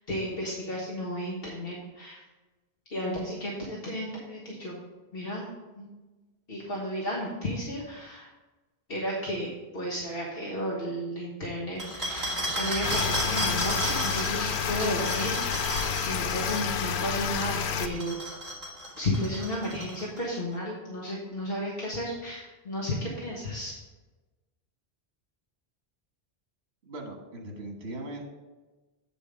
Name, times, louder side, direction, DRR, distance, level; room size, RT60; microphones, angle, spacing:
voice 1, 0.1-2.2 2.9-4.8 5.1-5.4 5.7-5.9 6.5-8.3 8.9-12.3 12.6-15.7 16.0-18.2 19.0-23.7, equal, 65° left, -4 dB, 1.6 m, -33 dB
sound 1, 11.8-16.7 17.7-20.2, right 1 dB, 30° right, 2.6 m, -33 dB
sound 2, 12.8-17.9, left 7 dB, 90° left, 0.9 m, -29 dB
voice 2, 26.8-28.3, right 1 dB, 80° right, 1 dB, 1.7 m, -39 dB
8.6 x 5.3 x 5.0 m, 1.2 s
omnidirectional pair, 1.1 m